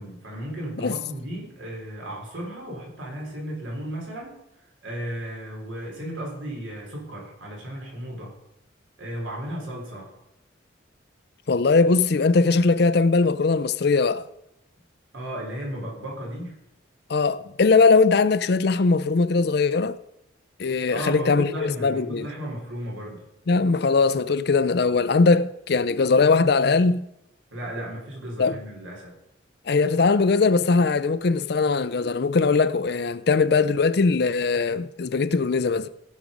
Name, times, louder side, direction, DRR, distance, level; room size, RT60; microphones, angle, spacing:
voice 1, 0.0-4.4 4.8-8.4 9.0-10.1 15.1-16.5 20.9-23.2 27.5-29.1, right 1 dB, 80° right, 4.0 m, -34 dB
voice 2, 11.5-14.2 17.1-20.0 20.6-22.3 23.5-27.1 28.4-28.6 29.7-35.9, left 4 dB, 55° left, 0.5 m, -20 dB
16.5 x 6.3 x 5.2 m
head